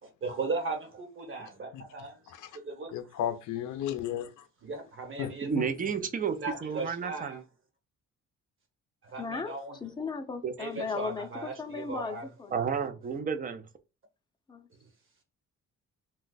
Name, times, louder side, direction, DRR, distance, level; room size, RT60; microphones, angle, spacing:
voice 1, 0.0-2.9 4.6-5.5 6.3-7.4 9.0-9.8 10.6-12.3 12.7-12.9, right 3 dB, 45° right, 1.2 m, -37 dB
voice 2, 2.3-2.6 2.9-4.5 5.2-5.9, left 10 dB, 75° left, 0.5 m, -35 dB
voice 3, 5.4-7.4 10.4-10.5 12.5-13.6, right 6 dB, 30° right, 0.5 m, -31 dB
voice 4, 9.2-9.5 9.8-12.6 14.5-14.7, left 4 dB, 15° left, 0.6 m, -36 dB
2.5 x 2.3 x 3.9 m
cardioid pair, 90°, 30 cm